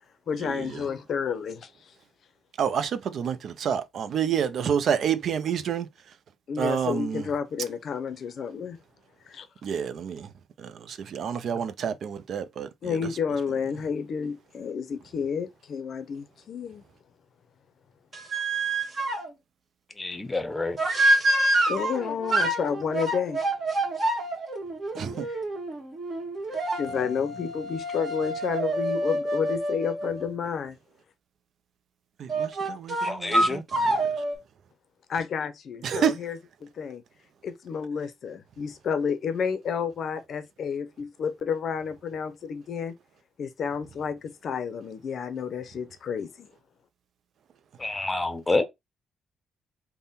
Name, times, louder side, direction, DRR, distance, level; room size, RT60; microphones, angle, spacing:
voice 1, 0.3-1.9 6.5-8.8 9.3-9.4 11.5-11.7 12.8-16.8 21.7-23.4 25.2-25.4 26.8-30.8 35.1-37.0 37.4-42.9 43.4-46.5, left 6 dB, 60° left, 0.5 m, -31 dB
voice 2, 2.6-5.9 6.6-7.2 9.6-10.3 10.6-12.7 24.9-25.3 32.2-34.0 35.8-36.2, right 8 dB, 65° right, 0.4 m, -29 dB
sound 1, 18.1-19.3 20.8-30.3 32.3-34.4, right 1 dB, 40° right, 1.4 m, -27 dB
voice 3, 20.0-20.8 33.0-33.6 47.8-48.6, left 2 dB, 15° left, 0.7 m, -28 dB
3.5 x 2.1 x 4.0 m
cardioid pair, 90°, 0 cm